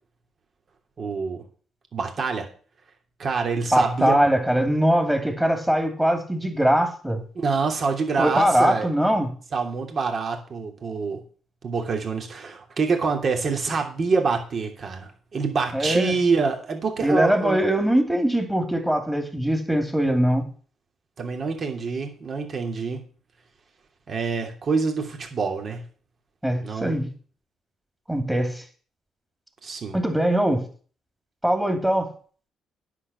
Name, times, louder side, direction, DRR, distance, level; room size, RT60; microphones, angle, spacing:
voice 1, 1.0-1.4 1.9-2.5 3.2-4.2 7.3-8.9 9.5-11.2 11.6-17.6 21.2-23.1 24.1-25.8 26.6-27.0 29.6-30.0, right 4 dB, 50° right, 3.0 m, -26 dB
voice 2, 3.7-7.2 8.2-9.3 15.7-16.1 17.0-20.4 26.4-27.1 28.1-28.6 29.9-30.7 31.4-32.1, equal, 5° right, 2.7 m, -22 dB
9.9 x 7.1 x 7.1 m
cardioid pair, 90°, 0 cm